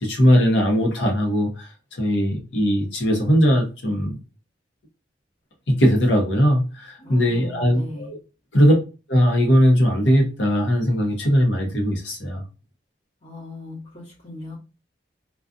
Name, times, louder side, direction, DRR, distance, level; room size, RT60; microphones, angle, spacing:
voice 1, 0.0-4.2 5.7-8.2 8.5-8.7 9.1-12.4, equal, 80° left, 0.9 m, -19 dB
voice 2, 7.0-8.1 13.2-14.6, left 2 dB, 40° left, 1.1 m, -39 dB
2.5 x 2.3 x 2.4 m
head